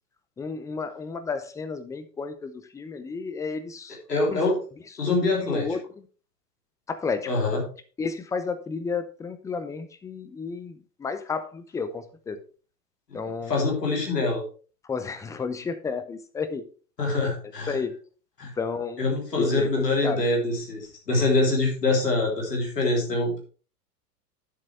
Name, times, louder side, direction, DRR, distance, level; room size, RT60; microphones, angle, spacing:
voice 1, 0.4-4.0 4.3-4.4 5.1-5.8 6.9-7.3 8.0-12.4 13.1-13.5 14.8-16.6 17.2-17.3 17.7-18.0 18.6-19.0 19.3-20.2, left 5 dB, 5° left, 10 dB, 0.5 m, -32 dB
voice 2, 4.1-4.6 5.0-5.6 7.3-7.6 13.5-14.4 17.0-17.8 18.4-18.5 19.0-23.4, left 2 dB, 75° left, 0 dB, 3.5 m, -24 dB
9.4 x 7.4 x 3.3 m, 0.38 s
figure-of-eight pair, 90°, 49 cm